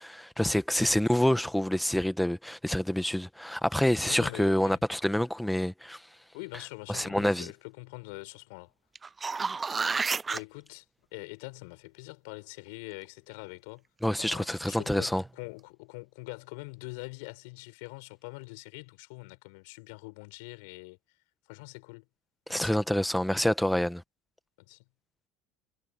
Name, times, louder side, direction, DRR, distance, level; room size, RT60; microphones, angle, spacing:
voice 1, 0.0-6.0 6.9-7.5 14.0-15.2 22.5-24.0, left 1 dB, 5° left, 1.4 m, -27 dB
voice 2, 4.0-4.8 6.3-8.7 10.3-10.8 11.1-13.8 14.2-21.0 21.5-22.1 22.5-22.8 24.7-24.8, left 29 dB, 75° left, 7.2 m, -44 dB
sound 1, 9.0-10.4 15.2-15.3, right 4 dB, 20° right, 0.5 m, -30 dB
supercardioid pair, 95°, 0 cm